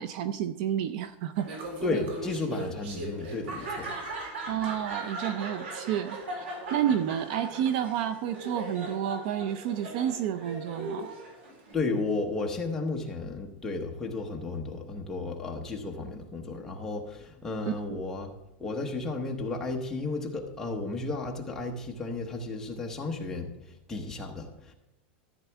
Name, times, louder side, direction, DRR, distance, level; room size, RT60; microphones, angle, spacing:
voice 1, 0.0-1.5 4.5-6.5 6.7-11.1 17.7-18.0, right 10 dB, 45° right, 11 dB, 0.4 m, -30 dB
Laughter, 1.4-11.7, right 2 dB, 90° right, 3.9 m, -38 dB
voice 2, 1.8-3.9 11.7-18.3 18.6-23.5 23.9-24.7, left 3 dB, 10° left, 0 dB, 1.0 m, -33 dB
14.0 x 8.2 x 3.5 m, 0.93 s
supercardioid pair, 175°, 6 cm